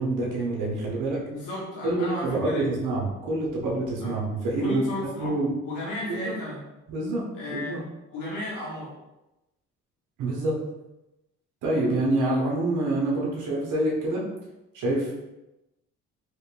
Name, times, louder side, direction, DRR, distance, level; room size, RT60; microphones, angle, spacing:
voice 1, 0.0-1.2 1.8-5.5 6.1-6.2 6.9-7.8 10.2-10.6 11.6-14.2 14.7-15.1, right 2 dB, 80° right, -3 dB, 1.0 m, -26 dB
voice 2, 1.3-2.7 4.0-4.2 4.6-5.3 5.6-6.6 7.3-7.8 8.1-8.9, left 1 dB, 85° left, -6 dB, 1.2 m, -34 dB
4.8 x 2.2 x 2.5 m, 0.96 s
cardioid pair, 90°, 30 cm